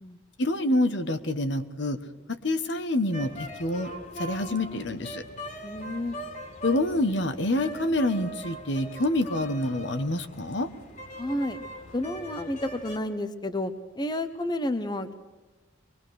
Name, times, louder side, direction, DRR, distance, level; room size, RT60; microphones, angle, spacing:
voice 1, 0.4-2.0 2.3-3.9 4.2-5.2 6.6-10.7, left 1 dB, 65° left, 9 dB, 1.3 m, -27 dB
sound 1, 3.1-13.0, equal, 40° left, 2.4 m, -41 dB
voice 2, 5.6-6.2 11.2-11.6 11.9-15.2, left 1 dB, 20° left, 10 dB, 0.9 m, -31 dB
23.5 x 21.5 x 6.4 m, 1.2 s
head